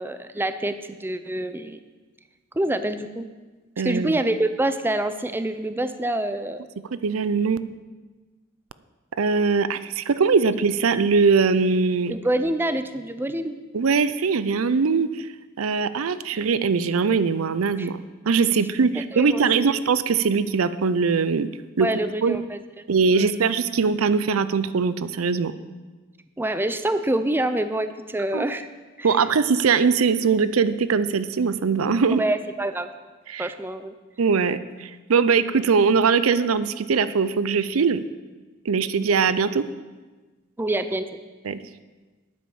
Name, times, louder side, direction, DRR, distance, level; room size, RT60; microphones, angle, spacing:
voice 1, 0.0-1.8 2.6-3.3 3.8-6.7 12.1-13.6 17.8-17.9 18.9-19.8 21.8-22.6 23.1-23.6 26.4-28.7 29.0-29.1 32.2-32.9 33.4-33.9 40.6-41.2, right 1 dB, 10° right, 10 dB, 0.5 m, -26 dB
voice 2, 3.8-4.2 7.0-7.6 9.2-12.1 13.7-15.3 15.6-18.0 18.3-21.5 21.8-21.9 22.2-22.4 22.9-25.5 28.3-28.4 29.0-32.2 33.3-33.5 34.2-38.0 38.7-39.6 41.4-41.6, right 5 dB, 90° right, 14 dB, 0.5 m, -21 dB
9.3 x 8.8 x 7.1 m, 1.3 s
head